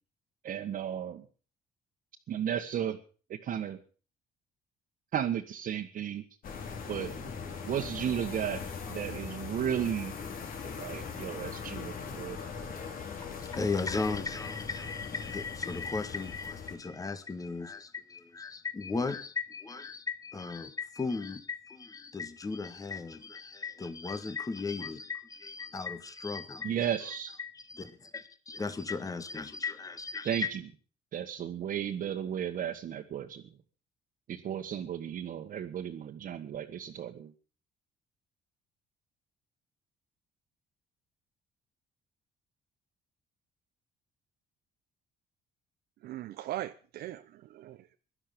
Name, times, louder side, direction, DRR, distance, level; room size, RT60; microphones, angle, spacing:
voice 1, 0.4-1.2 2.3-3.0 3.4-3.8 5.1-6.2 6.9-7.1 7.7-8.6 8.9-10.1 10.8-12.7 26.6-27.3 30.2-30.4 31.1-33.4 34.3-37.3, right 9 dB, 55° right, 1.7 m, -34 dB
sound 1, 6.4-16.8, left 6 dB, 55° left, 4.5 m, -40 dB
voice 2, 13.4-30.5, left 4 dB, 20° left, 1.7 m, -36 dB
voice 3, 46.0-48.0, right 13 dB, 70° right, 0.9 m, -40 dB
16.5 x 12.0 x 7.0 m
cardioid pair, 110°, 17 cm